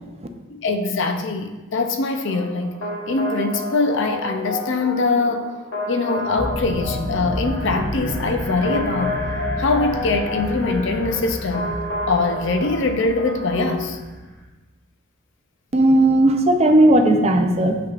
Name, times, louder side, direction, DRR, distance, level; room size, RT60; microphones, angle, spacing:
voice 1, 0.5-2.8 3.1-5.5 5.9-9.2 9.6-11.7 12.1-14.0, left 3 dB, 60° left, 7 dB, 0.5 m, -22 dB
sound 1, 2.3-13.9, left 2 dB, 80° left, 1.2 m, -30 dB
sound 2, 6.4-14.5, equal, 10° left, 0.8 m, -31 dB
voice 2, 15.7-17.8, right 1 dB, 30° right, 5 dB, 0.4 m, -15 dB
7.7 x 5.8 x 2.4 m, 1.2 s
head